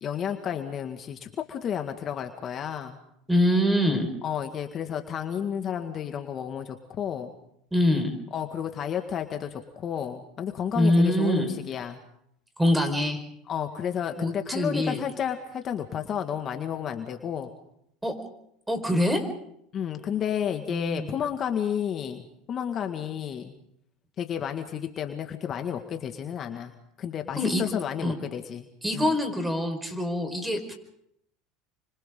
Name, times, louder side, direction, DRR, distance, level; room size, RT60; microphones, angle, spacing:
voice 1, 0.0-3.0 4.2-7.3 8.3-12.0 13.5-17.5 19.7-23.6 24.2-28.7 28.9-29.2, left 8 dB, 40° left, 5 dB, 1.9 m, -31 dB
voice 2, 3.3-4.1 7.7-8.1 10.7-11.5 12.6-13.2 14.2-15.0 18.0-18.2 18.7-19.2 20.7-21.1 27.4-27.6 28.0-28.2 28.8-30.7, left 1 dB, 10° right, 6 dB, 5.0 m, -24 dB
30.0 x 25.5 x 3.9 m, 0.74 s
hypercardioid pair, 95°, 0 cm